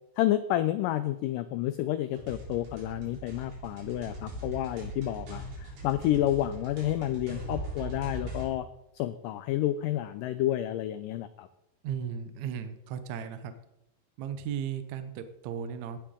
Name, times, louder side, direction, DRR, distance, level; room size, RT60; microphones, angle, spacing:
voice 1, 0.2-8.7 8.9-11.5, left 13 dB, 90° left, 12 dB, 1.9 m, -30 dB
sound 1, 2.2-8.5, right 1 dB, 60° right, 5.1 m, -40 dB
voice 2, 11.8-13.5 14.2-16.0, right 8 dB, 80° right, 9 dB, 1.6 m, -36 dB
17.0 x 11.5 x 3.7 m, 0.85 s
omnidirectional pair, 4.5 m